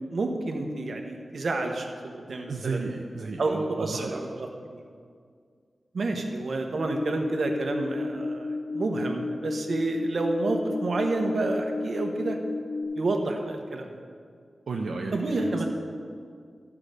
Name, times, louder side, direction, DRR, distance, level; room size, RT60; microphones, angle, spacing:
voice 1, 0.1-2.8 3.4-4.8 5.9-8.5 8.7-12.4 13.0-13.9 15.1-15.7, right 2 dB, 65° right, 3 dB, 1.0 m, -29 dB
voice 2, 2.5-4.2 14.7-15.7, right 3 dB, 85° right, 0 dB, 0.6 m, -33 dB
sound 1, 6.8-12.8, left 3 dB, 70° left, 0.8 m, -33 dB
12.0 x 4.9 x 6.6 m, 2.1 s
wide cardioid pair, 120°, 0 cm